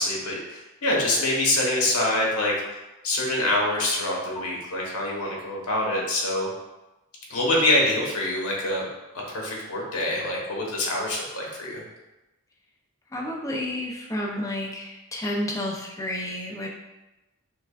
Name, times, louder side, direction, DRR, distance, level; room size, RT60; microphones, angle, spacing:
voice 1, 0.0-2.5 3.0-6.5 7.3-8.9 9.3-11.8, left 1 dB, 85° left, -2 dB, 1.0 m, -25 dB
voice 2, 13.1-16.7, left 1 dB, 15° left, -1 dB, 0.4 m, -30 dB
5.7 x 2.2 x 2.3 m, 1.0 s
head